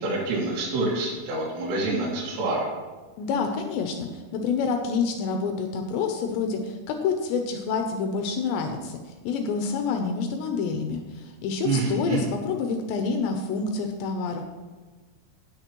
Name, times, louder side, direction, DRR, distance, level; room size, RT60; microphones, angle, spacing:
voice 1, 0.0-2.7 11.6-12.2, right 3 dB, 65° right, -6 dB, 3.8 m, -27 dB
voice 2, 3.2-9.0 9.2-14.4, left 5 dB, 80° left, 4 dB, 2.5 m, -28 dB
17.0 x 6.6 x 3.0 m, 1.3 s
omnidirectional pair, 5.8 m